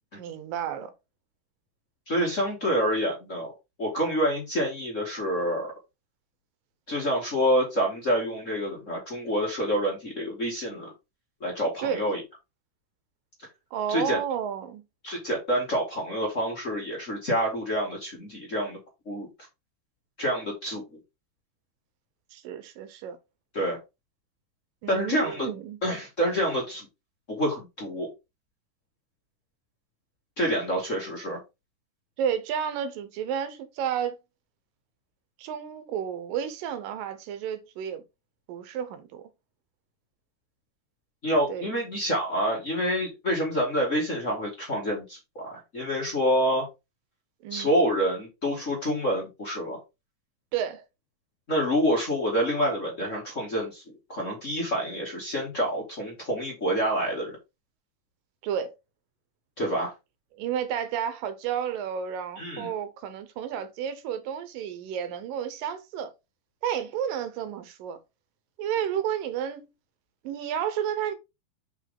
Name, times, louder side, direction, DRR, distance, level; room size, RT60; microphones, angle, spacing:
voice 1, 0.2-0.9 11.8-12.0 13.7-14.8 22.3-23.2 24.8-25.8 32.2-34.2 35.4-38.0 38.5-39.2 41.5-41.8 47.4-47.7 50.5-50.8 58.4-58.7 60.4-66.1 66.6-68.0 68.6-69.7 70.2-71.2, right 9 dB, 90° right, 2.7 m, -31 dB
voice 2, 2.1-3.5 3.8-5.7 6.9-10.9 11.4-12.2 13.9-14.2 15.0-18.8 19.0-19.3 20.2-20.8 23.5-23.8 24.9-25.5 25.8-26.9 27.3-28.1 30.4-31.4 41.2-46.7 47.5-49.8 51.5-53.8 54.1-57.4 59.6-59.9 62.4-62.7, equal, 30° left, 1.5 m, -27 dB
6.2 x 5.0 x 3.6 m
omnidirectional pair, 3.8 m